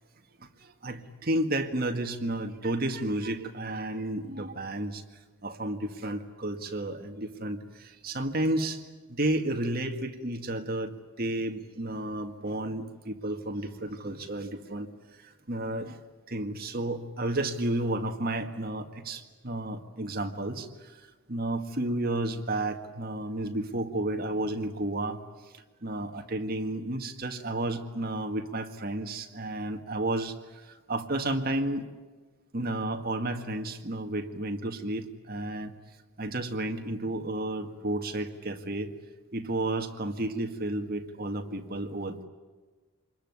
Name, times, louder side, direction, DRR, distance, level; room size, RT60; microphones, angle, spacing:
voice 1, 0.4-5.0 5.4-8.8 9.1-10.9 11.2-14.9 15.2-16.0 16.3-21.0 21.3-25.2 25.5-31.8 32.5-35.7 36.2-38.9 39.3-42.2, right 1 dB, 45° right, 5 dB, 1.9 m, -32 dB
26.5 x 21.5 x 9.6 m, 1.3 s
head